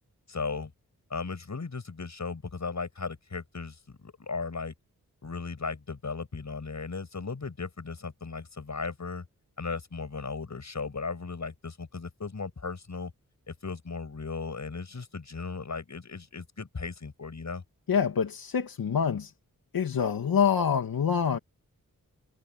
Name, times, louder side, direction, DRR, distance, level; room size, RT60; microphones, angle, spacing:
voice 1, 0.3-0.7 1.1-4.7 5.2-9.3 9.6-13.1 13.5-17.6, left 4 dB, 55° left, 7.7 m, -36 dB
voice 2, 17.9-19.3 19.7-21.4, left 7 dB, 90° left, 2.4 m, -26 dB
cardioid pair, 60°, 34 cm